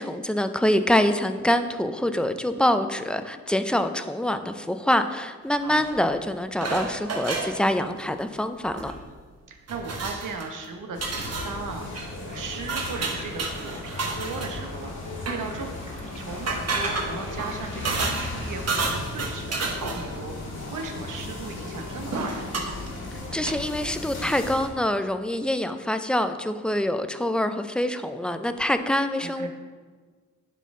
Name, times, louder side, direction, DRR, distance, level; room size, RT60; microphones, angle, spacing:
voice 1, 0.0-8.9 23.3-29.5, left 1 dB, 5° left, 9 dB, 0.4 m, -25 dB
sound 1, 5.8-6.0 6.6-7.6 8.6-9.0 9.3-9.4 9.7-10.5 11.0-11.6 11.9-12.1 12.7-14.6 15.2-15.4 16.3-18.4 18.7-20.2 21.8-21.9 22.1-22.9 23.4-23.5, right 3 dB, 55° right, 1.1 m, -30 dB
voice 2, 9.5-15.0 15.2-22.5 29.2-29.5, right 4 dB, 85° right, 4 dB, 1.0 m, -37 dB
sound 2, 10.9-24.7, left 2 dB, 75° left, 1.7 m, -36 dB
sound 3, 12.3-18.3, left 1 dB, 20° left, 1.3 m, -45 dB
11.0 x 4.2 x 3.7 m, 1.5 s
cardioid pair, 95°, 31 cm